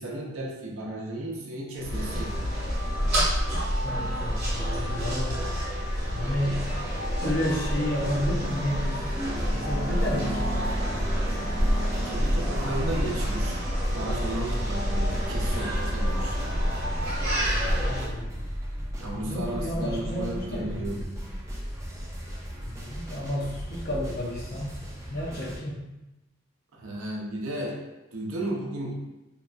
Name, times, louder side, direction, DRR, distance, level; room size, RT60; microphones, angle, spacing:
voice 1, 0.0-2.6 12.0-16.4 19.0-21.2 26.8-27.8 28.1-29.0, right 1 dB, 80° right, -1 dB, 0.6 m, -34 dB
sound 1, 1.8-18.1, equal, 50° right, 0.9 m, -28 dB
voice 2, 3.8-5.4 6.1-6.7 7.2-9.0 9.5-10.5 10.9-11.1 12.6-13.1 17.8-18.3 19.1-20.9 22.6-24.8 25.1-25.9, left 1 dB, 45° left, -3 dB, 0.6 m, -31 dB
sound 2, 8.7-13.3, right 1 dB, 90° left, 0.7 m, -37 dB
sound 3, 9.3-25.6, equal, 15° right, 0.3 m, -35 dB
2.7 x 2.2 x 2.4 m, 0.99 s
head